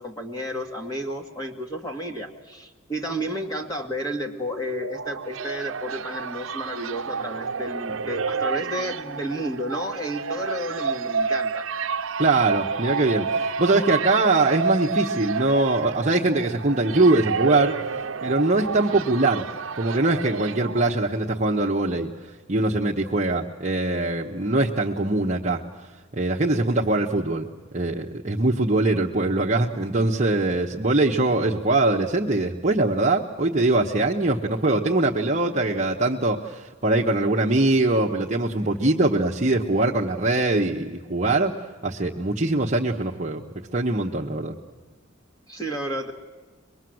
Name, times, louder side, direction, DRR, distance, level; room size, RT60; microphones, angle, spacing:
voice 1, 0.0-11.7 45.5-46.1, equal, 20° left, 3 dB, 1.8 m, -31 dB
sound 1, 4.5-21.5, right 5 dB, 70° right, 0.7 m, -30 dB
voice 2, 12.2-17.7 18.2-19.4 19.7-22.1 22.5-25.6 26.1-27.5 27.7-41.5 41.8-43.4 43.7-44.6, right 2 dB, 35° right, -2 dB, 1.0 m, -22 dB
24.0 x 21.5 x 7.8 m, 1.4 s
head